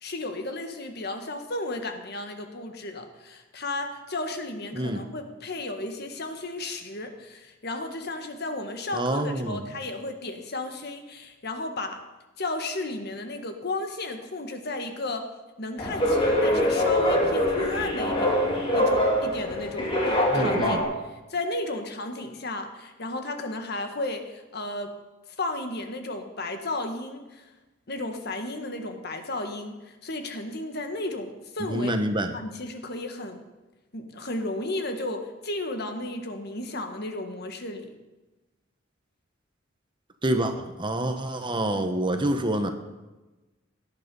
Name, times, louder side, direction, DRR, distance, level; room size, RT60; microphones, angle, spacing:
voice 1, 0.0-12.0 12.4-15.3 15.6-18.3 18.7-19.9 20.3-20.8 21.1-24.9 25.4-27.4 27.9-31.9 32.3-33.4 33.9-37.9, left 2 dB, 55° left, 6 dB, 1.7 m, -34 dB
voice 2, 8.9-9.6 20.3-20.8 31.7-32.3 40.2-40.5 40.8-42.7, right 1 dB, 25° right, 6 dB, 1.2 m, -27 dB
sound 1, 15.8-20.8, left 1 dB, 30° left, 3.0 m, -23 dB
18.0 x 10.5 x 5.5 m, 1.1 s
head